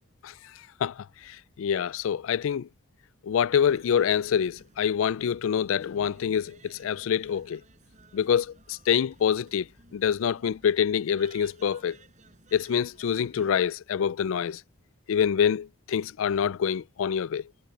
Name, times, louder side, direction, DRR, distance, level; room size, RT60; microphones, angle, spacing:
voice 1, 0.8-2.7 3.2-7.6 8.1-9.7 9.9-12.0 12.5-14.6 15.1-17.4, left 8 dB, 70° left, 0.3 m, -26 dB
sound 1, 3.7-13.5, right 3 dB, 35° right, 5.3 m, -57 dB
head